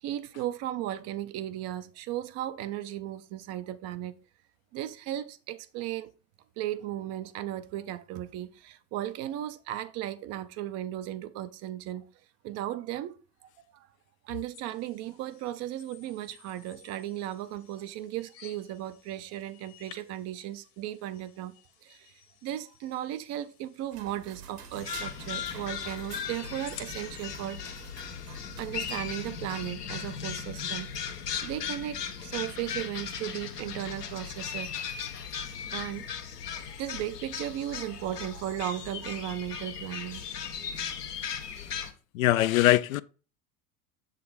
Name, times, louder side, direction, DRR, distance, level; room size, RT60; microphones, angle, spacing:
voice 1, 0.0-4.1 4.7-6.1 6.6-12.1 12.4-13.2 13.7-13.9 14.2-27.9 28.6-30.9 31.4-34.7 35.7-36.1 36.4-40.3, right 13 dB, 35° right, 0.5 m, -36 dB
sound 1, 14.5-27.3, left 10 dB, 45° left, 1.2 m, -55 dB
sound 2, 23.9-29.7, right 7 dB, 70° right, 1.5 m, -48 dB
sound 3, 24.7-41.9, left 7 dB, 80° left, 0.9 m, -37 dB
voice 2, 42.1-43.0, left 15 dB, 60° left, 0.5 m, -22 dB
7.4 x 4.0 x 4.0 m
figure-of-eight pair, 70°, 47 cm